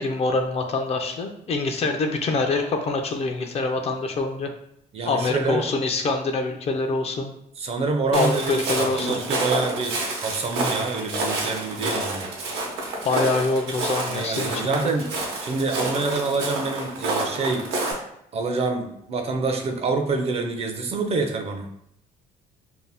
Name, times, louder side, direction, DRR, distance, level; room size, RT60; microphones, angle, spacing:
voice 1, 0.0-4.5 5.0-7.3 8.1-9.2 13.0-14.9, left 3 dB, 40° left, 5 dB, 0.4 m, -25 dB
voice 2, 4.9-5.7 7.6-12.3 14.1-15.1 15.4-17.7 18.3-21.7, right 3 dB, 35° right, 5 dB, 0.4 m, -26 dB
Walk footsteps, 8.1-17.9, right 2 dB, 85° right, 0.8 m, -28 dB
2.6 x 2.1 x 3.3 m, 0.75 s
cardioid pair, 110°, 17 cm